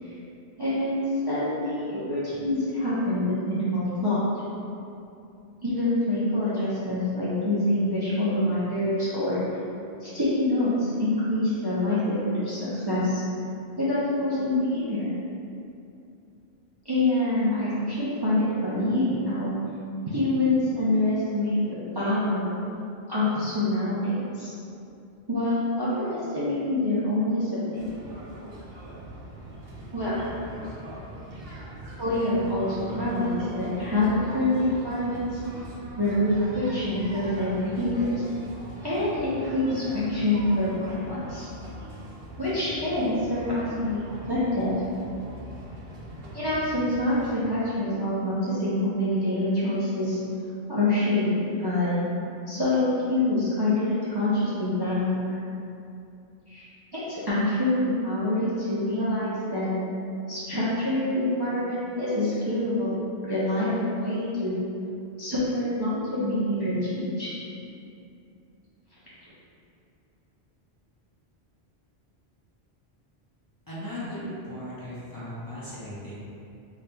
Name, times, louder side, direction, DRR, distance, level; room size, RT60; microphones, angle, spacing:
voice 1, 0.6-4.2 5.6-9.4 10.0-13.2 13.8-15.0 16.8-19.5 20.1-21.6 21.9-22.5 23.1-24.5 25.3-27.9 29.9-30.2 32.0-35.4 36.0-38.2 38.8-41.5 42.4-44.8 46.3-50.2 50.7-52.0 52.5-55.3 56.5-56.7 56.9-59.7 60.3-63.0 63.2-64.6 65.2-67.3, left 1 dB, 30° right, -11 dB, 0.4 m, -26 dB
sound 1, 27.7-47.3, right 1 dB, 65° right, 0.8 m, -41 dB
voice 2, 73.7-76.1, left 1 dB, 25° left, -11 dB, 0.6 m, -37 dB
4.0 x 2.8 x 2.2 m, 2.6 s
omnidirectional pair, 1.1 m